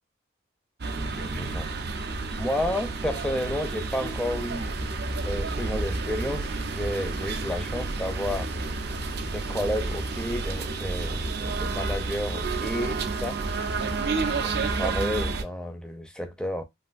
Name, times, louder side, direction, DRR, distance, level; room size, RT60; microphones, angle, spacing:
sound 1, 0.8-15.4, right 3 dB, 50° right, 0.5 m, -30 dB
voice 1, 1.2-1.7 2.4-4.8 5.3-8.5 9.3-13.4 14.3-16.6, left 1 dB, 5° left, 0.4 m, -31 dB
3.2 x 2.5 x 2.4 m
head